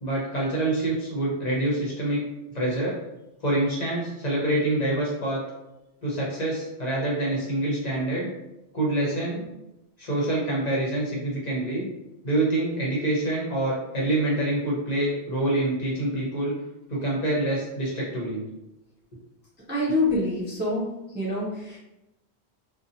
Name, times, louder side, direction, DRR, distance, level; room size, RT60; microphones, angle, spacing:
voice 1, 0.0-2.2 2.5-3.0 3.4-5.4 6.0-8.3 8.7-9.4 10.0-11.9 12.2-16.5 16.9-18.4, right 1 dB, 45° left, -4 dB, 0.7 m, -26 dB
voice 2, 19.7-20.9 21.1-21.8, left 2 dB, 15° right, -7 dB, 0.4 m, -26 dB
2.7 x 2.1 x 2.6 m, 0.94 s
omnidirectional pair, 1.1 m